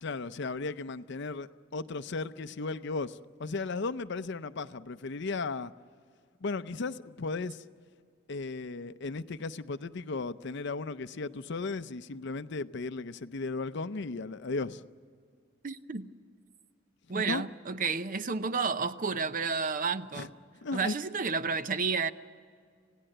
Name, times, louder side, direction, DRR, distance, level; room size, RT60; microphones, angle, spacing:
voice 1, 0.0-5.7 6.4-7.6 8.3-14.8 17.1-17.4 20.1-20.3 20.6-20.9, left 3 dB, 60° left, 0.6 m, -35 dB
voice 2, 15.6-16.1 17.1-20.3 20.7-22.1, right 5 dB, 45° right, 0.7 m, -31 dB
27.5 x 17.0 x 7.8 m
head